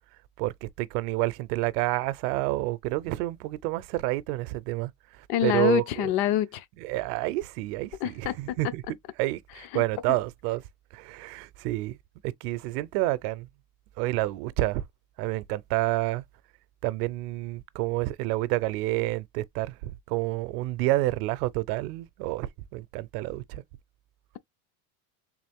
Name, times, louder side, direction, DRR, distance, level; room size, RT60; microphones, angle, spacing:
voice 1, 0.4-4.9 5.4-6.1 6.8-8.8 9.2-10.6 10.9-12.0 12.2-13.5 14.0-14.8 15.2-16.2 16.8-23.6, right 18 dB, 75° right, 0.6 m, -29 dB
voice 2, 5.3-6.6 8.0-8.4 9.7-9.8, left 12 dB, 55° left, 0.6 m, -26 dB
3.7 x 2.4 x 3.5 m
supercardioid pair, 135°, 47 cm